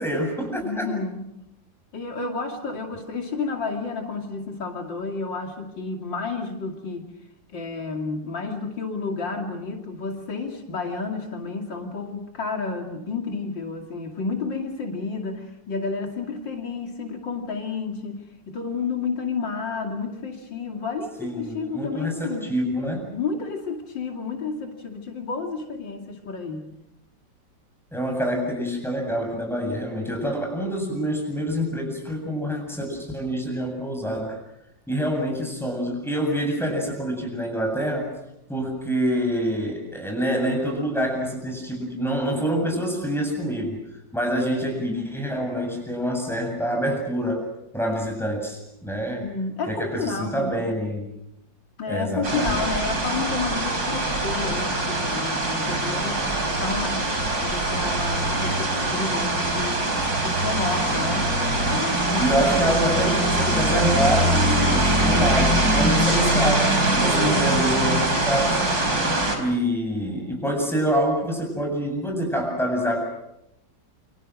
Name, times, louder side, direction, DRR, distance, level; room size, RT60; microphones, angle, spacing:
voice 1, 0.0-0.9 21.2-23.2 27.9-34.4 34.9-38.1 38.5-43.8 44.1-47.4 47.7-49.2 49.7-51.1 51.9-52.6 62.2-68.6 69.3-73.0, equal, ahead, 2 dB, 7.9 m, -26 dB
voice 2, 0.6-1.3 1.9-7.1 7.5-22.5 23.1-26.7 49.2-50.8 51.8-56.2 56.5-57.1 57.4-59.8 60.2-61.3 61.7-62.4 63.0-63.5 67.0-67.6, left 4 dB, 75° left, 2 dB, 3.3 m, -31 dB
sound 1, 52.2-69.4, right 1 dB, 55° right, 5.0 m, -23 dB
28.5 x 26.0 x 6.4 m, 0.84 s
omnidirectional pair, 2.0 m